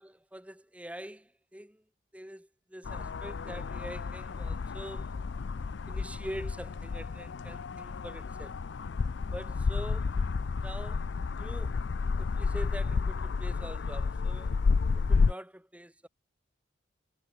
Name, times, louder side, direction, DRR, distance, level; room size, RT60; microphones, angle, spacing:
voice 1, 0.0-1.8 2.1-5.1 5.9-8.6 9.3-10.2 10.6-11.8 12.2-14.6 14.9-16.1, equal, 5° right, 2.3 m, -44 dB
sound 1, 2.8-15.3, left 4 dB, 60° left, 0.4 m, -31 dB
head